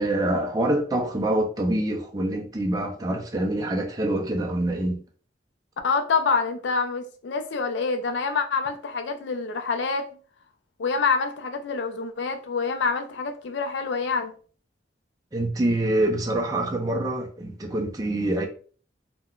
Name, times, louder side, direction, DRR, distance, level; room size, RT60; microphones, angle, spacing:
voice 1, 0.0-5.0 15.3-18.5, right 1 dB, 20° right, 0.4 m, -25 dB
voice 2, 5.8-10.1 10.8-14.3, left 4 dB, 70° left, 0.4 m, -26 dB
3.6 x 2.1 x 2.3 m
head